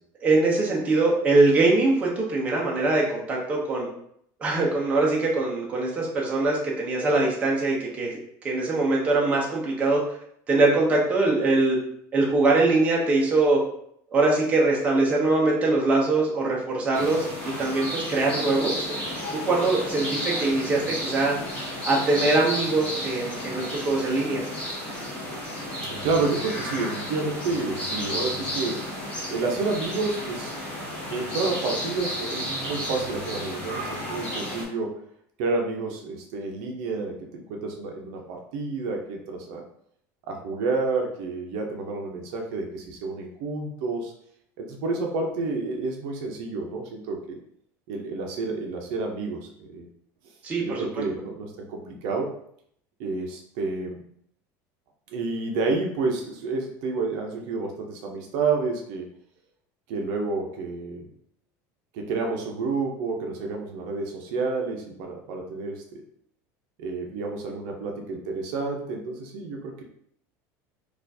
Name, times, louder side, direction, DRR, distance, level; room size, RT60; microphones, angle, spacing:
voice 1, 0.2-3.9 4.4-8.2 8.4-10.0 10.5-11.8 12.1-13.6 14.1-17.3 17.6-18.9 19.3-21.3 21.8-24.4 50.4-50.9, right 2 dB, 20° right, -3 dB, 0.7 m, -22 dB
sound 1, 16.9-34.6, equal, 20° left, 1.4 m, -32 dB
voice 2, 25.8-28.9 29.3-30.6 31.1-34.9 35.4-39.6 40.3-44.1 44.6-47.4 47.9-49.9 50.6-52.3 53.0-54.0 55.1-59.1 59.9-61.1 61.9-65.8 66.8-69.8, right 3 dB, 65° right, 1 dB, 0.6 m, -29 dB
4.2 x 2.4 x 2.7 m, 0.68 s
cardioid pair, 170°, 8 cm